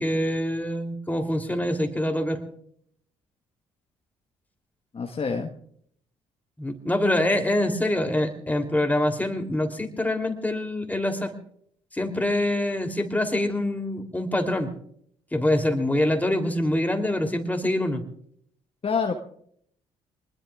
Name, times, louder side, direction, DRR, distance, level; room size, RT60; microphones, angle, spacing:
voice 1, 0.0-2.4 6.6-11.3 11.9-14.7 15.3-18.0, left 1 dB, 10° left, 4 dB, 3.2 m, -25 dB
voice 2, 4.9-5.5 18.8-19.1, left 5 dB, 40° left, 4 dB, 1.4 m, -26 dB
25.0 x 20.5 x 2.4 m, 0.65 s
hypercardioid pair, 45°, 15 cm